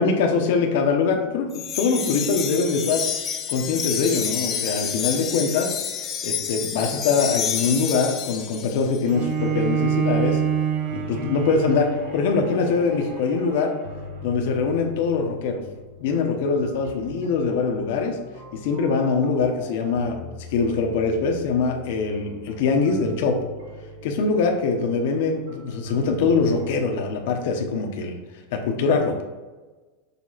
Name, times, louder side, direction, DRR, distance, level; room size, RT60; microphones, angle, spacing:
voice 1, 0.0-3.1 3.5-5.7 6.2-10.4 10.9-13.7 14.2-15.6 16.0-18.2 18.5-23.5 24.0-28.2 28.5-29.2, left 4 dB, 55° left, 3 dB, 1.1 m, -23 dB
Wind chime, 1.5-9.0, left 8 dB, 25° left, 0.7 m, -29 dB
Bowed string instrument, 9.1-14.3, right 7 dB, 60° right, 1.5 m, -27 dB
sound 1, 10.0-27.7, left 1 dB, 75° right, 2.0 m, -42 dB
6.9 x 3.6 x 4.2 m, 1.3 s
supercardioid pair, 170°, 0 cm